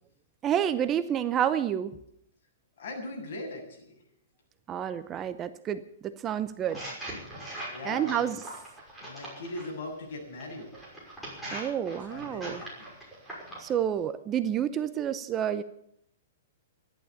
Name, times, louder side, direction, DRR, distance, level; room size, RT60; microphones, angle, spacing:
voice 1, 0.4-1.9 4.7-6.8 7.8-8.4 11.5-12.6 13.6-15.6, right 9 dB, 20° right, 12 dB, 0.7 m, -29 dB
voice 2, 2.8-4.0 7.7-8.2 9.0-10.7 12.0-13.0, left 2 dB, 60° left, 0 dB, 7.4 m, -40 dB
sound 1, 6.6-9.7 10.4-13.7, right 1 dB, ahead, 5.9 m, -41 dB
14.0 x 11.5 x 8.5 m, 0.70 s
hypercardioid pair, 160°, 0 cm